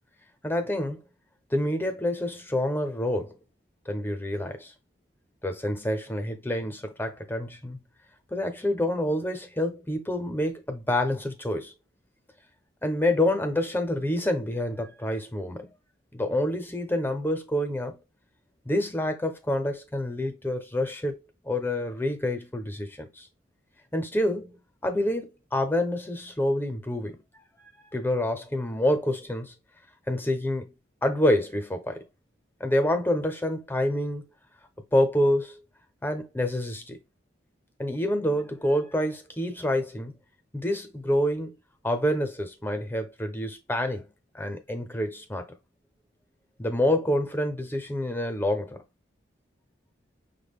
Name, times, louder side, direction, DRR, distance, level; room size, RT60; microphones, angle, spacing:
voice 1, 0.4-1.0 1.5-3.3 3.9-4.7 5.4-7.8 8.3-11.7 12.8-15.7 16.1-18.0 18.7-21.2 21.4-23.3 23.9-27.2 27.9-29.5 30.1-30.7 31.0-32.0 32.6-34.2 34.9-35.6 36.0-37.0 37.8-40.1 40.5-41.5 41.8-44.0 44.3-45.5 46.6-48.8, left 1 dB, 10° left, 0.7 m, -27 dB
6.0 x 2.2 x 3.6 m
head